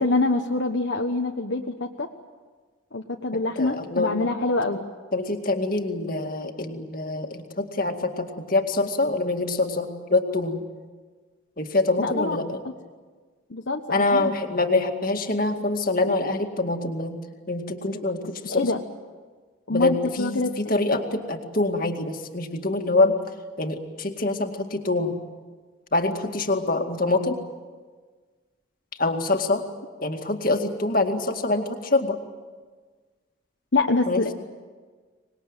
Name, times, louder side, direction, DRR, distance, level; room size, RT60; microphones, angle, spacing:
voice 1, 0.0-2.1 2.9-4.9 12.0-12.4 13.5-14.3 18.5-18.8 19.7-20.8 33.7-34.3, left 3 dB, 65° left, 2 dB, 1.2 m, -25 dB
voice 2, 3.6-4.2 5.1-10.6 11.6-12.6 13.9-17.2 17.5-18.7 19.7-23.2 23.6-25.2 25.9-27.4 29.0-29.7 30.0-32.2 34.1-34.3, left 2 dB, 45° left, 4 dB, 2.1 m, -25 dB
25.0 x 20.5 x 9.1 m, 1.4 s
head